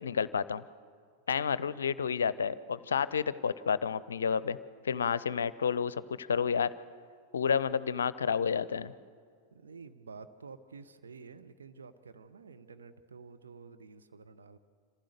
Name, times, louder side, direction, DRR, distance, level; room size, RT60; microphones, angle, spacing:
voice 1, 0.0-0.6 1.3-4.6 4.8-6.7 7.3-8.9, left 6 dB, 70° left, 18 dB, 0.5 m, -30 dB
voice 2, 1.3-1.8 2.8-3.0 9.5-14.6, right 5 dB, 70° right, 8 dB, 0.9 m, -51 dB
26.5 x 15.5 x 6.7 m, 2.1 s
figure-of-eight pair, 90°, 0 cm